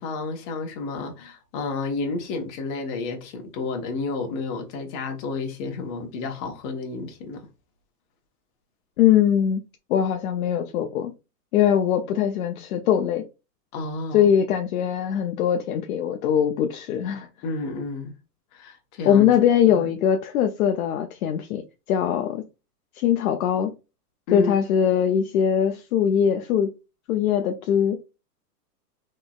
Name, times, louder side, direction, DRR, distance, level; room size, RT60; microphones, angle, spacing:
voice 1, 0.0-7.5 13.7-14.3 17.4-18.1 18.5-19.3 19.7-19.9 24.3-24.6, left 3 dB, 35° left, 1.1 m, -31 dB
voice 2, 9.0-9.6 9.9-11.1 11.5-13.2 14.1-17.3 19.1-21.6 21.9-22.4 23.0-23.7 24.3-26.7 27.1-28.0, left 9 dB, 60° left, 0.6 m, -21 dB
3.8 x 3.1 x 2.3 m
hypercardioid pair, 130°, 48 cm